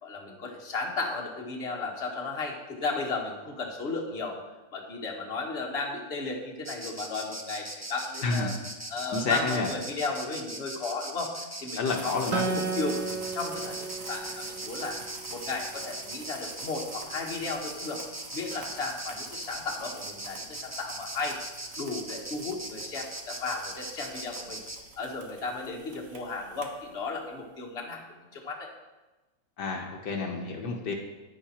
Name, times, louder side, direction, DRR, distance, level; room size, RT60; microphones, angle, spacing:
voice 1, 0.0-4.4 4.7-8.5 8.9-15.0 15.3-18.1 18.3-21.4 21.8-24.6 25.0-28.0 28.3-28.7, left 3 dB, 35° left, 0 dB, 1.7 m, -34 dB
Insect, 6.6-24.8, right 1 dB, 20° right, 0.4 m, -40 dB
voice 2, 8.2-8.6 9.1-9.7 11.8-12.4 29.6-30.9, left 3 dB, 70° left, 1 dB, 1.6 m, -29 dB
sound 1, 11.9-27.3, right 4 dB, 50° right, 1.3 m, -48 dB
Acoustic guitar, 12.3-15.8, right 5 dB, 75° right, 1.4 m, -35 dB
10.0 x 10.0 x 4.4 m, 1.1 s
omnidirectional pair, 1.9 m